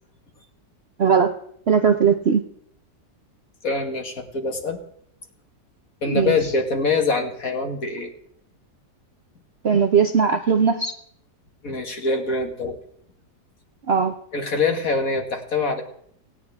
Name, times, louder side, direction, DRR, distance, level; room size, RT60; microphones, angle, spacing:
voice 1, 1.0-1.3 1.7-2.4 6.1-6.3 9.6-10.9 13.9-14.1, right 6 dB, 50° right, 6 dB, 0.8 m, -18 dB
voice 2, 3.6-4.8 6.0-8.1 11.6-12.8 14.3-15.8, left 3 dB, 50° left, 3 dB, 2.4 m, -24 dB
18.5 x 16.5 x 3.6 m, 0.67 s
omnidirectional pair, 1.9 m